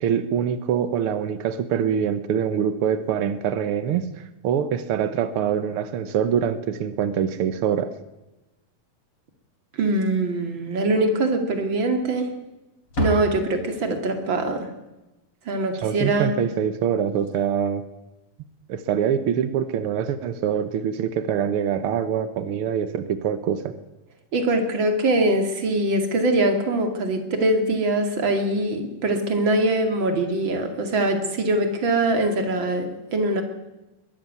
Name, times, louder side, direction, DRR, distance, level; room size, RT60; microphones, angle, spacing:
voice 1, 0.0-7.9 15.8-17.8 18.7-23.7, right 8 dB, 80° right, 12 dB, 1.2 m, -24 dB
Slam, 9.7-10.4 10.7-10.8 11.3-11.4 12.2-12.5 12.8-14.1 16.8-16.9 17.1-17.3 18.8-19.0, left 1 dB, 40° left, 4.4 m, -32 dB
voice 2, 9.8-12.3 13.0-14.7 15.5-16.3 24.3-33.4, right 2 dB, 40° right, 6 dB, 2.7 m, -23 dB
22.0 x 13.0 x 9.6 m, 1.0 s
omnidirectional pair, 4.0 m